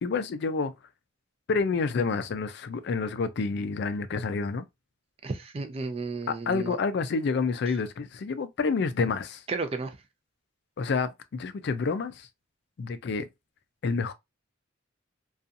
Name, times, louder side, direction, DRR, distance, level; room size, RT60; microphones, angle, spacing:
voice 1, 0.0-0.7 1.5-4.6 6.5-9.4 10.8-12.3 12.8-13.3 13.8-14.1, left 4 dB, 55° left, 0.4 m, -28 dB
voice 2, 5.2-6.8 9.5-10.0, right 3 dB, 30° right, 0.3 m, -33 dB
2.6 x 2.3 x 2.5 m
head